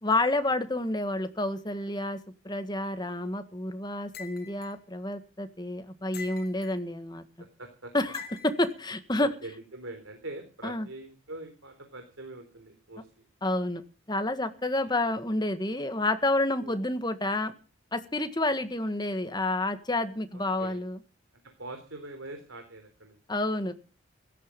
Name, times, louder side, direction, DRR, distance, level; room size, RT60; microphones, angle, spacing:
voice 1, 0.0-2.2 2.4-7.2 7.9-9.3 10.6-10.9 13.4-17.5 17.9-21.0 23.3-23.7, left 2 dB, 20° left, 9 dB, 1.7 m, -29 dB
sound 1, 4.1-4.7 6.1-6.8 8.1-8.7, left 5 dB, 50° left, 2.8 m, -44 dB
voice 2, 7.4-7.9 9.2-13.1 16.6-16.8 20.3-20.8 21.6-23.2, right 2 dB, 75° right, 5 dB, 3.8 m, -43 dB
16.5 x 13.5 x 5.4 m, 0.35 s
head